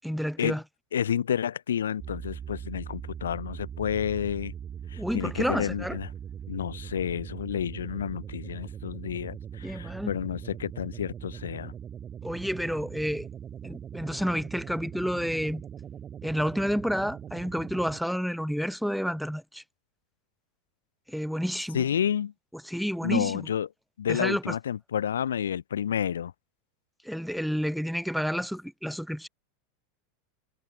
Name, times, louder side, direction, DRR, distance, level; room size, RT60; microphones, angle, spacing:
voice 1, 0.0-0.6 5.0-6.0 9.6-10.1 12.2-13.3 13.6-15.6 16.2-19.6 21.1-21.8 22.6-23.5 24.1-24.6 27.0-29.3, equal, ahead, 0.3 m, -30 dB
voice 2, 0.9-4.5 4.9-6.1 6.5-11.7 21.7-22.3 23.0-23.7 24.0-26.3, left 9 dB, 70° left, 1.1 m, -30 dB
sound 1, 2.0-18.0, right 8 dB, 30° right, 1.8 m, -41 dB
figure-of-eight pair, 85°, 0 cm